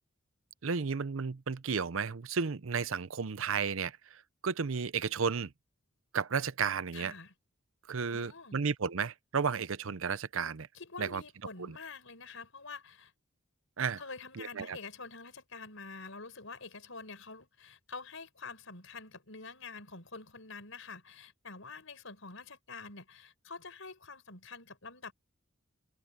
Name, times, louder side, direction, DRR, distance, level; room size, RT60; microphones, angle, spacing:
voice 1, 0.6-5.5 6.1-7.1 7.9-10.7 11.0-11.2 11.6-11.8 13.8-14.0 14.4-14.8, right 5 dB, 75° right, 0.7 m, -33 dB
voice 2, 6.9-7.3 8.1-8.6 10.7-13.1 14.0-25.1, left 4 dB, 70° left, 5.4 m, -47 dB
head